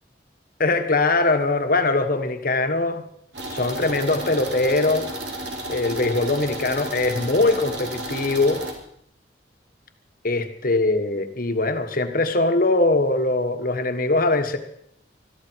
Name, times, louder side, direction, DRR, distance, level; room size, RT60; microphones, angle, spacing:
voice 1, 0.6-3.0 3.5-5.1 5.7-8.6 10.2-14.6, left 2 dB, 50° left, 7 dB, 1.5 m, -22 dB
sound 1, 3.3-8.7, right 1 dB, 70° right, 3.4 m, -32 dB
20.5 x 13.5 x 4.7 m, 0.71 s
head